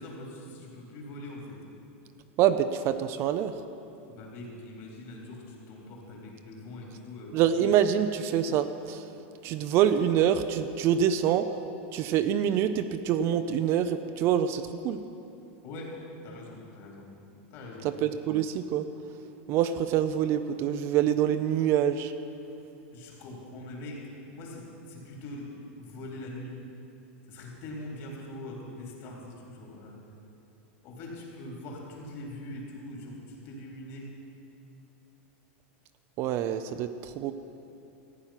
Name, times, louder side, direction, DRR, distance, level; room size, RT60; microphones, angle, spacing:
voice 1, 0.0-1.6 4.1-7.4 15.6-17.1 17.5-17.9 22.9-26.7 27.2-30.0 30.8-34.1, left 1 dB, 45° left, -2 dB, 3.5 m, -42 dB
voice 2, 2.4-3.5 7.3-9.0 9.4-11.5 11.9-15.0 18.0-18.8 19.5-22.1 36.2-37.3, right 9 dB, 40° right, 10 dB, 0.5 m, -26 dB
14.5 x 9.5 x 5.8 m, 2.7 s
supercardioid pair, 145°, 7 cm